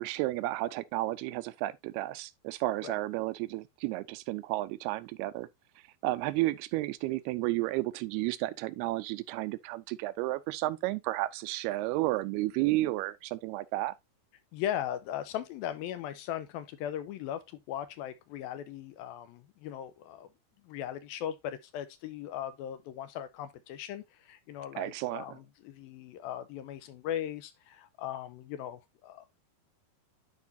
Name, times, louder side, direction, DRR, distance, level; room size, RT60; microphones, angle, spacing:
voice 1, 0.0-5.5 6.0-14.0 24.8-25.4, right 18 dB, 85° right, 2.6 m, -32 dB
voice 2, 14.5-20.3 20.6-29.4, left 11 dB, 80° left, 2.4 m, -38 dB
10.5 x 4.9 x 2.6 m
omnidirectional pair, 4.5 m